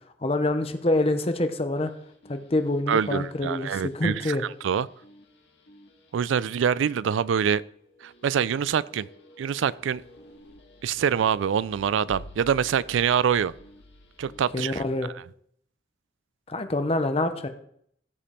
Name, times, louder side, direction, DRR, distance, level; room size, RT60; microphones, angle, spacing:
voice 1, 0.2-1.9 2.3-4.4 14.5-15.1 16.5-17.5, left 2 dB, 30° left, 0.7 m, -26 dB
sound 1, 1.7-15.0, left 1 dB, 65° left, 1.9 m, -51 dB
voice 2, 2.9-4.4 4.6-4.9 6.1-7.6 8.0-9.1 9.4-10.0 10.8-13.5 14.2-14.8, right 7 dB, 85° right, 0.4 m, -25 dB
14.5 x 5.1 x 4.3 m
head